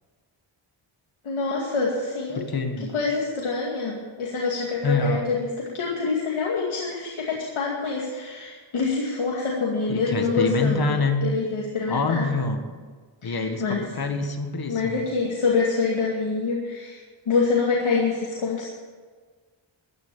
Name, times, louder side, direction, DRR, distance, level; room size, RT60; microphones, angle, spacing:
voice 1, 1.2-2.4 2.9-12.3 13.2-13.9 14.7-18.7, left 4 dB, 85° left, -3 dB, 2.4 m, -26 dB
voice 2, 2.3-2.9 4.8-5.3 9.9-11.3 11.9-12.6 13.2-15.0, left 3 dB, 50° left, 5 dB, 1.8 m, -26 dB
14.5 x 10.5 x 7.2 m, 1.5 s
wide cardioid pair, 155°, 48 cm